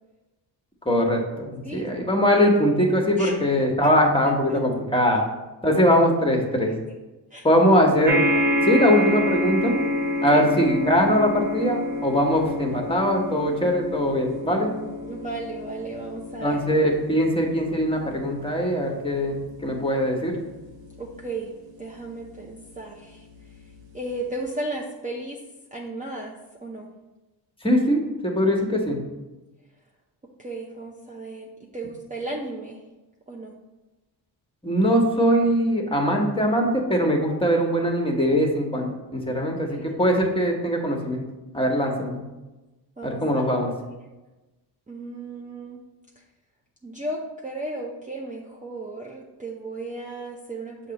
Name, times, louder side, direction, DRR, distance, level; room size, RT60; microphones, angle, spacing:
voice 1, 0.8-5.2 5.6-6.7 7.4-8.2 8.6-9.7 10.2-14.7 16.4-19.4 19.6-20.3 27.6-29.0 34.6-41.2 41.5-42.2 43.0-43.7, equal, 10° left, 1 dB, 1.2 m, -21 dB
voice 2, 1.6-2.0 3.2-3.3 7.3-7.4 10.3-10.4 15.0-16.6 21.0-21.5 21.8-23.3 23.9-25.4 25.7-26.4 26.6-26.9 30.4-32.8 33.3-33.5 39.7-39.9 43.0-43.4 44.9-45.8 46.8-50.9, right 2 dB, 15° right, -2 dB, 0.6 m, -34 dB
sound 1, 8.0-22.6 23.4-23.5 23.7-23.8, left 1 dB, 75° right, 1.0 m, -29 dB
6.5 x 2.9 x 5.2 m, 1.1 s
cardioid pair, 80°, 45 cm